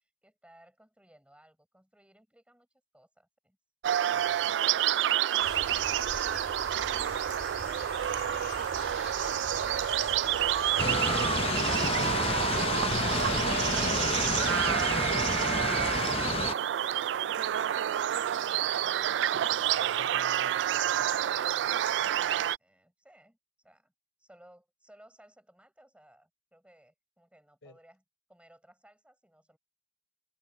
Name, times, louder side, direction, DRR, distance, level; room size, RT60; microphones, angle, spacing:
voice 1, 0.2-2.7 2.9-3.6 22.6-23.9 24.2-28.0 28.3-29.6, right 1 dB, 5° right, 7.3 m, -60 dB
sound 1, 3.8-22.6, right 10 dB, 70° right, 0.3 m, -29 dB
voice 2, 4.1-5.1 18.8-21.6 27.6-27.8, left 2 dB, 75° left, 4.4 m, -55 dB
sound 2, 5.4-14.5, left 3 dB, 55° left, 3.6 m, -44 dB
sound 3, 10.8-16.5, left 4 dB, 35° left, 0.6 m, -30 dB
head